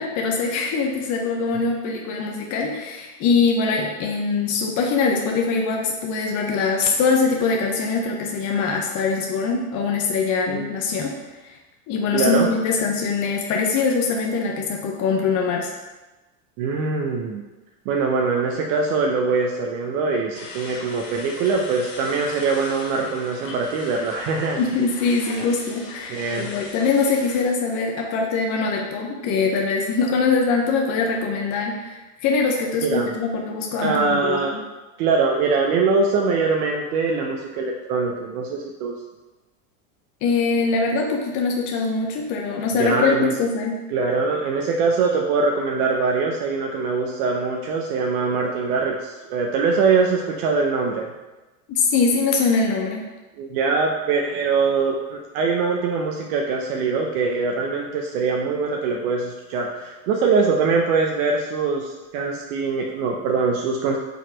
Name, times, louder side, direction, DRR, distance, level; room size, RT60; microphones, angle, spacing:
voice 1, 0.0-11.1 11.4-11.6 11.9-15.7 24.6-34.4 40.2-43.8 51.7-53.0, left 4 dB, 40° left, 1 dB, 0.8 m, -23 dB
voice 2, 12.1-12.5 16.6-17.4 17.9-24.6 25.4-25.5 26.1-26.5 32.8-33.1 33.8-34.5 35.0-38.9 42.8-43.3 43.9-51.1 53.4-64.0, right 4 dB, 60° right, 0 dB, 0.8 m, -23 dB
sound 1, 20.3-27.4, left 3 dB, 80° left, 1.3 m, -39 dB
5.1 x 4.1 x 4.5 m, 1.1 s
supercardioid pair, 115°, 47 cm